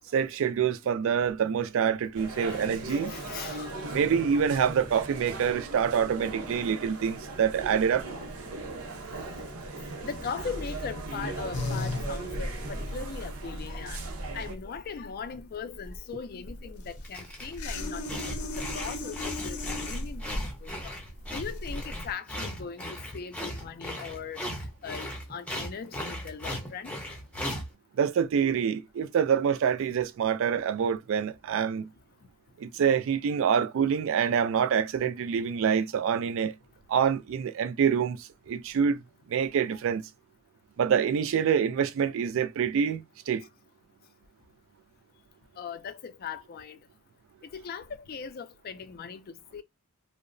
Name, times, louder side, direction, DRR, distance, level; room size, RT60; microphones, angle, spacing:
voice 1, 0.1-3.1 3.9-8.1 27.9-31.9 32.6-36.5 36.9-39.0 39.3-40.1 40.8-43.5, right 7 dB, 60° right, 0.3 m, -26 dB
sound 1, 2.1-14.6, right 2 dB, 80° right, 0.8 m, -38 dB
voice 2, 2.2-5.4 7.9-8.3 10.0-14.0 14.3-19.6 19.9-20.9 21.3-24.4 24.8-26.9 45.6-46.8 47.4-49.6, left 6 dB, 45° left, 0.3 m, -40 dB
sound 2, 11.5-22.1, left 2 dB, 85° left, 0.6 m, -36 dB
sound 3, 16.9-17.6 18.0-27.7, equal, 5° left, 0.6 m, -37 dB
2.7 x 2.0 x 2.5 m
head